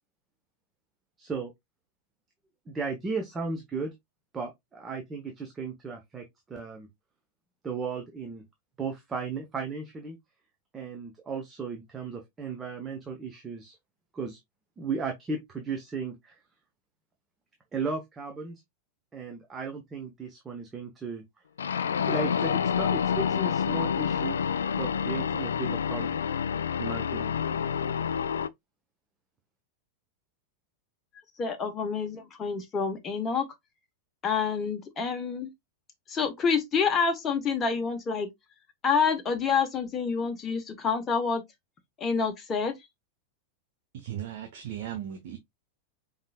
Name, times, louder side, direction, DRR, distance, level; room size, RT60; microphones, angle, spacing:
voice 1, 1.2-1.5 2.7-3.9 4.3-6.9 7.6-8.4 8.8-10.2 10.7-13.8 14.1-14.4 14.8-16.4 17.7-18.6 19.1-21.2 22.1-24.4 24.8-26.2 26.8-27.3, right 4 dB, 20° right, 1.0 m, -35 dB
sound 1, 21.6-28.5, left 7 dB, 65° left, 0.3 m, -28 dB
voice 2, 31.4-33.4 34.2-35.5 36.1-38.3 38.8-41.4 42.0-42.7, left 5 dB, 25° left, 1.2 m, -27 dB
voice 3, 43.9-45.4, right 10 dB, 50° right, 0.9 m, -37 dB
5.4 x 3.7 x 2.4 m
figure-of-eight pair, 90°, 0 cm